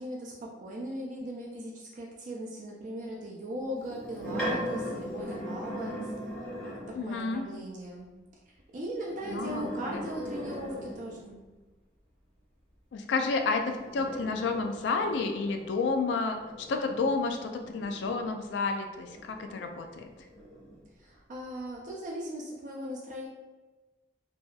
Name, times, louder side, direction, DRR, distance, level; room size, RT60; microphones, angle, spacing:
voice 1, 0.0-6.1 6.6-8.1 8.7-11.4 21.0-23.3, right 1 dB, 45° right, -2 dB, 0.3 m, -38 dB
sound 1, 3.8-7.1 9.0-11.4 13.3-18.5 19.1-20.8, equal, 5° left, 0.6 m, -39 dB
voice 2, 6.9-7.5 9.3-10.0 12.9-13.6 13.9-20.1, left 4 dB, 80° left, 5 dB, 0.3 m, -30 dB
2.6 x 2.3 x 2.2 m, 1.2 s
head